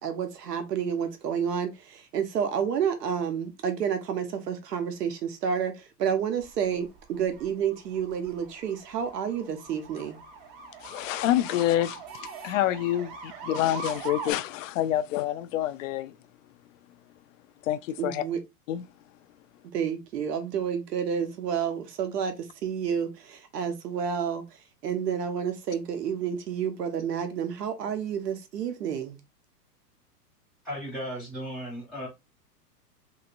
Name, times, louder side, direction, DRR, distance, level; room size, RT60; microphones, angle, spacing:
voice 1, 0.0-10.2 18.0-18.4 19.7-22.4 22.6-24.4 24.8-29.2, right 7 dB, 75° right, 1.1 m, -30 dB
sound 1, 6.4-14.3, right 4 dB, 35° right, 0.8 m, -42 dB
voice 2, 10.8-12.0 12.4-16.2 17.6-18.2 18.7-18.8, left 13 dB, 55° left, 0.5 m, -27 dB
voice 3, 30.6-32.1, equal, ahead, 0.4 m, -35 dB
3.0 x 3.0 x 2.5 m
hypercardioid pair, 125°, 48 cm